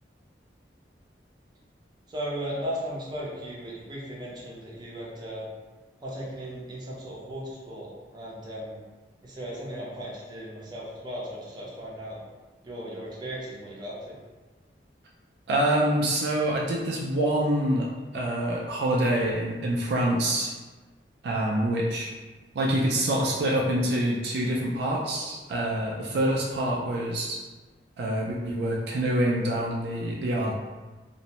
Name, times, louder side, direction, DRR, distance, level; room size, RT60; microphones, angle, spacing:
voice 1, 2.1-5.4 6.0-8.8 9.2-12.2 12.6-14.1, equal, 25° right, -5 dB, 0.6 m, -36 dB
voice 2, 15.5-17.9 18.1-20.5 21.2-22.1 22.5-27.4 28.0-30.5, right 1 dB, 65° right, -3 dB, 0.3 m, -26 dB
2.5 x 2.0 x 2.8 m, 1.3 s
head